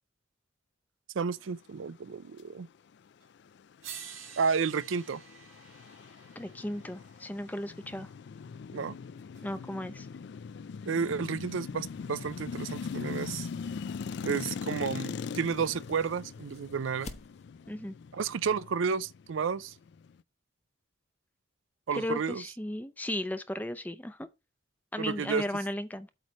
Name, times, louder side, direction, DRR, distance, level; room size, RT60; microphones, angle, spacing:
voice 1, 1.1-2.7 4.4-5.2 8.7-9.0 10.9-13.5 14.2-17.1 18.1-19.7 21.9-22.4 25.0-25.5, right 6 dB, 70° right, 0.5 m, -31 dB
sound 1, 3.2-3.3 3.8-8.0 9.4-9.5, right 8 dB, 90° right, 2.4 m, -49 dB
sound 2, 3.5-20.2, left 5 dB, 60° left, 0.3 m, -41 dB
voice 2, 6.4-8.1 9.4-10.1 17.7-17.9 21.9-24.3 24.9-26.1, left 1 dB, 10° left, 0.6 m, -35 dB
sound 3, 12.1-17.7, left 2 dB, 35° left, 1.0 m, -54 dB
8.3 x 3.2 x 6.2 m
head